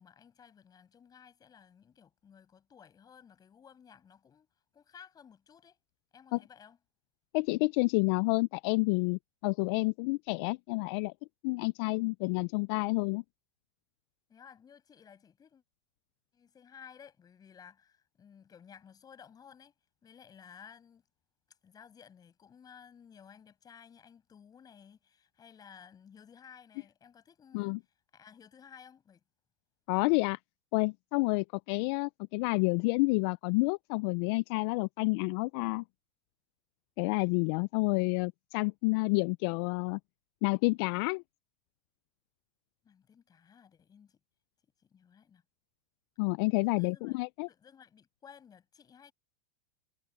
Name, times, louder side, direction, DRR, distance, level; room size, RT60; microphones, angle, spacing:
voice 1, 0.0-4.5 4.7-5.8 6.1-6.8 14.3-15.6 16.3-19.7 20.0-21.0 21.6-27.8 28.1-29.2 42.8-44.2 44.8-45.4 46.8-47.2 47.5-49.1, left 7 dB, 25° left, 7.9 m, -56 dB
voice 2, 7.3-11.1 11.4-13.2 27.5-27.8 29.9-30.4 30.7-35.8 37.0-40.0 40.4-41.2 46.2-47.5, left 28 dB, 55° left, 0.4 m, -29 dB
supercardioid pair, 120°, 16 cm